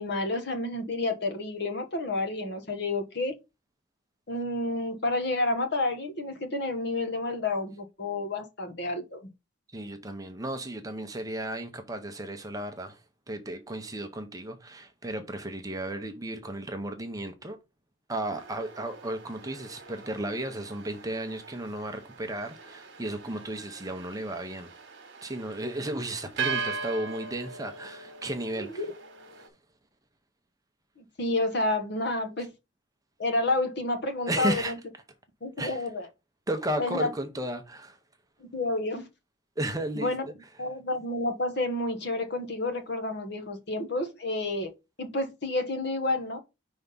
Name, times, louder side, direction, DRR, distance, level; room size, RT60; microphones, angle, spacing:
voice 1, 0.0-3.4 4.3-9.3 28.8-28.9 31.0-32.5 33.2-34.8 35.4-36.1 36.8-37.1 38.4-39.1 39.9-40.2 40.6-44.7 45.0-46.4, left 2 dB, 50° left, 1.0 m, -30 dB
voice 2, 9.7-13.0 13.3-17.6 18.1-24.7 25.2-28.8 34.3-34.7 35.6-35.8 36.5-38.0 39.6-40.1, right 1 dB, 15° right, 0.7 m, -34 dB
sound 1, 18.3-29.5, right 5 dB, 55° right, 1.3 m, -40 dB
5.4 x 3.5 x 5.3 m
head